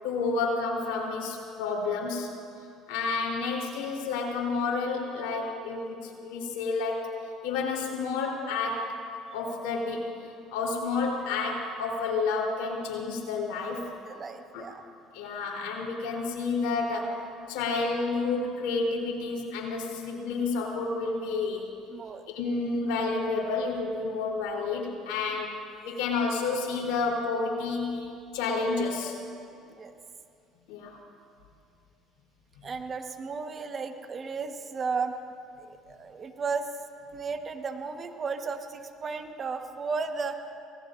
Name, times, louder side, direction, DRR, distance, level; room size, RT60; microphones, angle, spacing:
voice 1, 0.0-2.3 2.9-7.1 7.4-8.9 9.3-10.1 10.5-13.9 14.5-14.6 15.1-17.2 17.5-21.7 22.3-25.6 25.8-29.2 30.7-31.0, left 4 dB, 80° left, -1 dB, 3.7 m, -30 dB
voice 2, 13.8-14.8 21.9-22.2 29.7-29.9 32.6-35.2 35.6-36.7 37.1-40.4, right 5 dB, 40° right, 6 dB, 1.3 m, -34 dB
28.0 x 18.5 x 2.6 m, 2.5 s
supercardioid pair, 75°, 0 cm